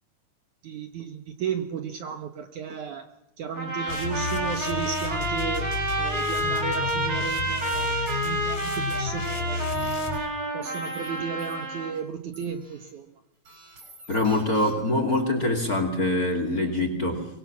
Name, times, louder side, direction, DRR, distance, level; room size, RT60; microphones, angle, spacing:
voice 1, 0.6-3.1 3.4-5.7 6.0-8.0 8.2-9.7 10.5-13.1 14.2-14.4, right 7 dB, 60° right, 7 dB, 2.3 m, -34 dB
sound 1, 3.5-11.9, right 1 dB, 25° right, 4.4 m, -29 dB
sound 2, 3.9-10.2, left 5 dB, 45° left, 6.0 m, -32 dB
sound 3, 9.1-9.3 9.7-10.2 10.6-11.1 11.4-12.0 12.3-12.9 13.5-15.0, right 1 dB, 45° right, 8.4 m, -49 dB
voice 2, 14.1-17.3, left 2 dB, 25° left, 7 dB, 2.6 m, -24 dB
23.5 x 23.5 x 7.3 m, 0.81 s
omnidirectional pair, 4.5 m